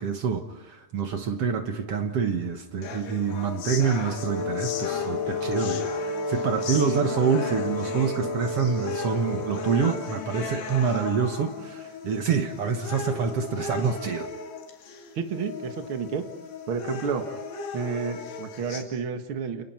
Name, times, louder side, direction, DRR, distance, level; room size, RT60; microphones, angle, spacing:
voice 1, 0.0-14.3, right 6 dB, 65° right, 5 dB, 1.5 m, -27 dB
sound 1, 2.8-18.8, left 4 dB, 80° left, 4.8 m, -36 dB
Brass instrument, 4.1-10.1, left 2 dB, 60° left, 7.5 m, -31 dB
voice 2, 15.1-16.2 16.7-17.2 17.7-19.6, right 5 dB, 45° right, 5 dB, 1.7 m, -30 dB
30.0 x 29.0 x 4.5 m, 0.91 s
omnidirectional pair, 4.8 m